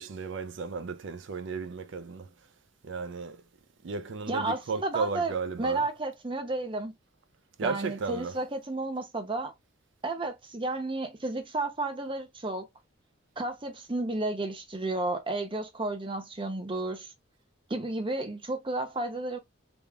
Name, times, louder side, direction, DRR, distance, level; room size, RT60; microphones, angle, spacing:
voice 1, 0.0-2.3 2.8-3.4 3.8-5.9 7.6-8.4, right 4 dB, 65° right, 0.5 m, -34 dB
voice 2, 4.3-5.3 5.6-6.9 7.6-9.5 10.0-12.7 13.4-17.1 17.7-19.4, right 2 dB, 25° right, 0.8 m, -32 dB
3.6 x 2.2 x 3.4 m
head